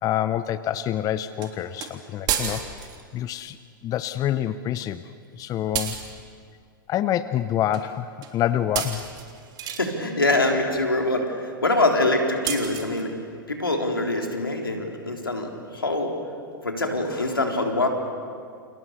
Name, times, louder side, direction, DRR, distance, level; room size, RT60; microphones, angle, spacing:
voice 1, 0.0-2.9 3.1-3.6 3.8-5.0 5.3-6.0 6.9-9.0, left 11 dB, 30° left, 13 dB, 0.9 m, -27 dB
sound 1, 1.4-1.5 1.8-1.9 2.3-3.0 5.7-6.1 7.7-7.9 8.2-8.4 8.7-9.9 12.5-13.0, right 9 dB, 35° right, 3.4 m, -30 dB
voice 2, 9.6-13.2 13.5-16.2 16.6-17.9, left 2 dB, 90° left, 2 dB, 3.9 m, -24 dB
29.5 x 29.5 x 6.8 m, 2.2 s
figure-of-eight pair, 95°, 12 cm